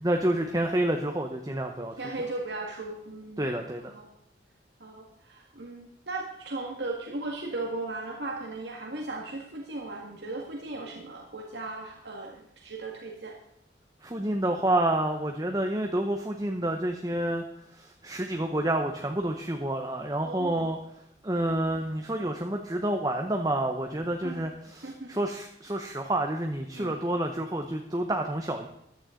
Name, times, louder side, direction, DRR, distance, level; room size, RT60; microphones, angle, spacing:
voice 1, 0.0-1.9 3.4-3.9 14.0-17.4 17.7-20.8 21.2-28.7, right 1 dB, 20° right, 3 dB, 0.9 m, -29 dB
voice 2, 2.0-3.5 3.9-4.1 4.8-13.3 20.2-20.7 24.2-24.4 24.8-25.1 26.8-26.9, right 2 dB, 70° right, 0 dB, 1.9 m, -37 dB
15.0 x 12.0 x 3.8 m, 0.77 s
head